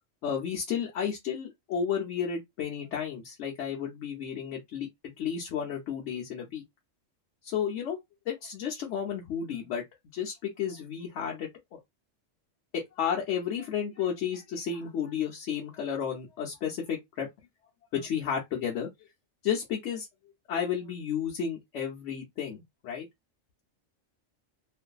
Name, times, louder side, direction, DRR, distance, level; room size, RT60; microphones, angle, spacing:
voice 1, 0.2-4.9 5.2-6.6 7.4-8.0 8.3-9.8 10.1-11.8 12.7-17.3 17.9-18.9 19.4-20.1 20.5-23.1, left 8 dB, 70° left, 0.9 m, -32 dB
2.5 x 2.5 x 2.2 m
omnidirectional pair, 1.4 m